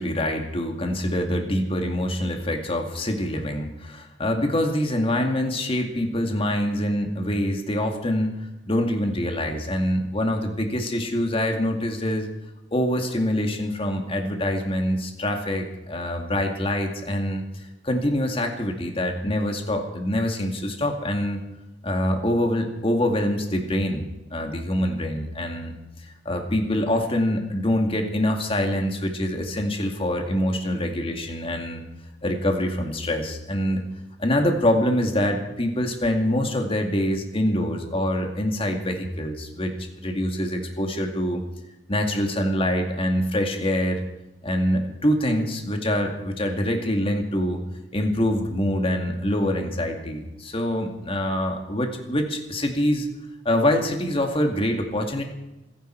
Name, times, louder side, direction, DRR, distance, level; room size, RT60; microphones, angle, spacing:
voice 1, 0.0-8.4 8.7-12.3 12.7-17.4 17.8-21.4 21.8-24.0 24.3-25.7 26.3-31.8 32.2-33.8 34.2-41.4 41.9-44.0 44.4-47.6 47.9-53.1 53.4-55.2, left 1 dB, 30° left, 3 dB, 2.3 m, -25 dB
27.5 x 11.0 x 4.6 m, 0.98 s
head